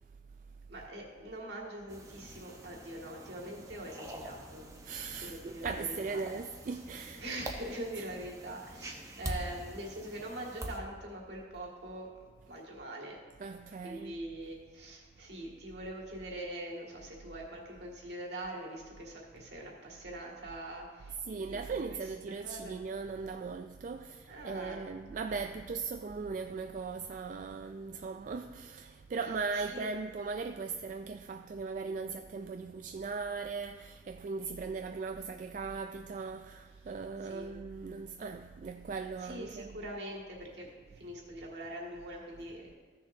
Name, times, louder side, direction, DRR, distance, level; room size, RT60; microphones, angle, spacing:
voice 1, 0.7-6.2 7.1-12.1 12.5-13.2 13.8-22.1 22.4-22.8 24.3-24.8 29.5-29.9 37.2-37.5 39.2-42.7, right 1 dB, 75° right, 1.9 m, -43 dB
sound 1, 1.9-10.8, right 1 dB, 20° right, 0.8 m, -45 dB
voice 2, 4.9-7.5 13.4-14.1 21.3-39.8, right 4 dB, 45° right, 0.3 m, -39 dB
15.0 x 6.5 x 2.7 m
head